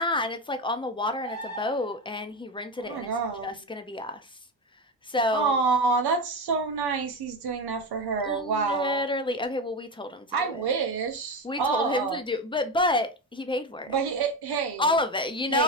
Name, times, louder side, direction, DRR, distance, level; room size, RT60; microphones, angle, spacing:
voice 1, 0.0-3.1 3.4-4.4 4.7-5.6 8.2-10.7 11.4-14.0 14.8-15.6, left 2 dB, 15° left, 0.6 m, -29 dB
sound 1, 1.2-2.2 5.7-5.8, right 3 dB, 60° right, 0.9 m, -39 dB
voice 2, 2.8-3.5 5.3-9.0 10.3-12.2 13.9-14.8 15.5-15.6, right 5 dB, 90° right, 0.7 m, -27 dB
2.8 x 2.4 x 3.2 m
cardioid pair, 45°, 37 cm